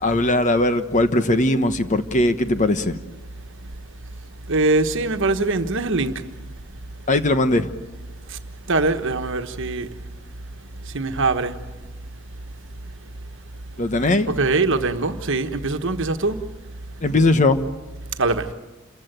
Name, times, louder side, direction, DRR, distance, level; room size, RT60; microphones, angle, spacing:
voice 1, 0.0-3.0 7.1-7.7 13.8-14.3 17.0-17.6, left 2 dB, 35° left, 10 dB, 1.1 m, -19 dB
voice 2, 4.5-6.1 8.7-9.9 10.9-11.5 14.4-16.4 18.2-18.4, right 3 dB, 65° right, 8 dB, 1.4 m, -22 dB
28.0 x 15.0 x 9.2 m, 1.2 s
head